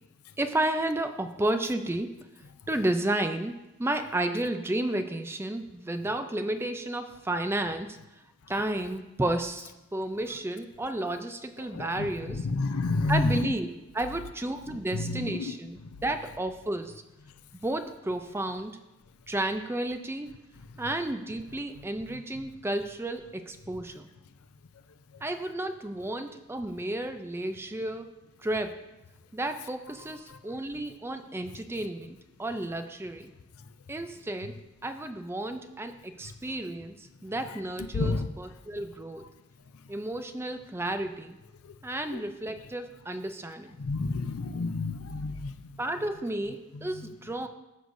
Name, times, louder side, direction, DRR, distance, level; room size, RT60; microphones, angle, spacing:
voice 1, 0.4-2.2 2.7-8.0 8.5-12.5 13.1-17.0 17.6-18.8 19.3-20.3 20.8-24.1 25.2-28.8 29.3-33.3 33.9-34.6 34.8-39.3 39.9-41.4 41.8-43.8 45.8-47.5, right 1 dB, 10° right, 0.4 m, -32 dB
voice 2, 11.7-13.5 14.9-15.6 15.8-16.0 30.3-30.4 37.9-38.3 42.1-42.2 43.8-45.5, left 3 dB, 80° left, 0.5 m, -29 dB
14.5 x 6.4 x 2.6 m
head